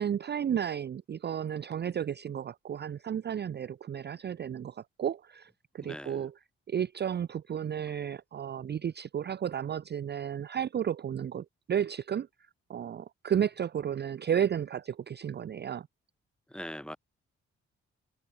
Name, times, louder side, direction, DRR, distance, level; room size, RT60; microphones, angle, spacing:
voice 1, 0.0-6.3 6.7-12.3 12.7-15.9, right 9 dB, 35° right, 0.5 m, -33 dB
voice 2, 5.8-6.3 16.5-17.0, equal, 5° left, 2.6 m, -41 dB
supercardioid pair, 50°, 29 cm